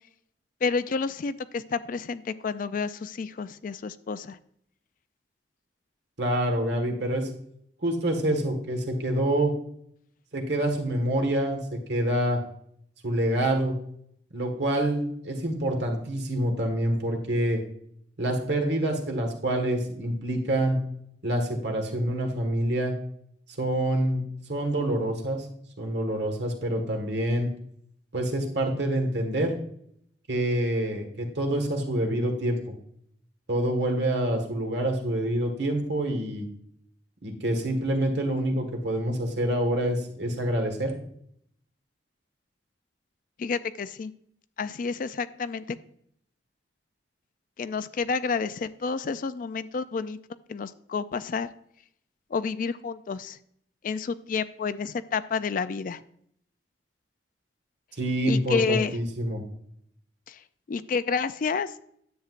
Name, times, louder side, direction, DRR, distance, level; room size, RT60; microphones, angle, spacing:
voice 1, 0.6-4.4 43.4-44.1 44.6-45.8 47.6-50.2 50.5-51.5 52.3-53.4 53.8-56.0 58.3-59.0 60.3-60.4 60.7-61.7, left 5 dB, 50° left, 14 dB, 0.3 m, -30 dB
voice 2, 6.2-7.3 7.8-9.5 10.3-11.6 11.9-12.4 13.0-13.8 14.3-17.6 18.2-20.8 21.2-22.9 23.6-24.2 24.5-25.5 25.8-27.5 28.1-29.5 30.3-32.6 33.5-36.5 37.2-40.9 58.0-59.4, right 1 dB, 70° right, 2 dB, 1.6 m, -26 dB
10.0 x 7.6 x 2.5 m, 0.69 s
head